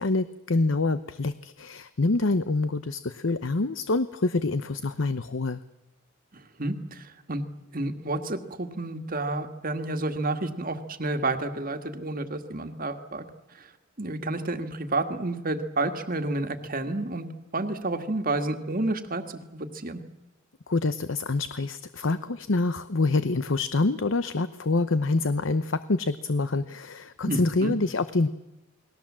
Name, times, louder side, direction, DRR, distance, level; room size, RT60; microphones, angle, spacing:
voice 1, 0.0-5.6 20.7-28.3, left 3 dB, 65° left, 13 dB, 0.8 m, -26 dB
voice 2, 6.3-7.4 7.7-13.3 13.5-13.7 14.0-20.0 27.3-27.7, right 2 dB, 40° right, 7 dB, 1.9 m, -30 dB
29.0 x 20.5 x 7.5 m, 1.0 s
head